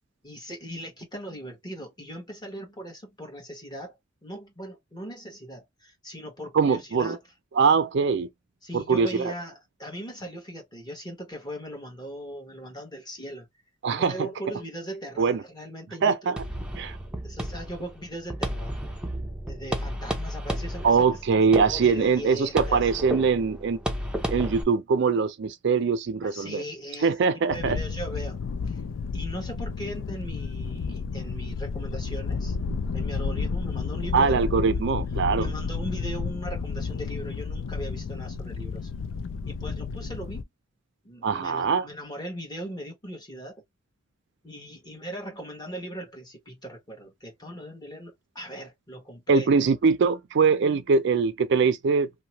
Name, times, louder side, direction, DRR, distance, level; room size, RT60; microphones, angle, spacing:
voice 1, 0.2-4.0 4.2-7.2 8.6-13.5 13.9-16.3 17.2-18.8 19.5-21.1 21.6-22.9 26.2-27.1 27.5-28.4 28.7-28.8 29.1-32.6 32.9-34.5 35.4-38.9 39.4-40.5 41.0-43.6 44.4-49.5, equal, 20° left, 1.2 m, -39 dB
voice 2, 6.5-7.2 7.5-8.3 8.7-9.3 13.8-14.2 15.2-15.4 16.0-16.4 16.8-17.0 20.8-23.8 24.3-26.6 27.0-27.8 34.1-35.5 41.2-41.9 49.3-52.1, right 5 dB, 60° right, 0.4 m, -22 dB
sound 1, 16.4-24.6, equal, 5° right, 0.5 m, -33 dB
sound 2, 27.5-40.4, left 5 dB, 70° left, 0.4 m, -31 dB
2.8 x 2.1 x 2.8 m
head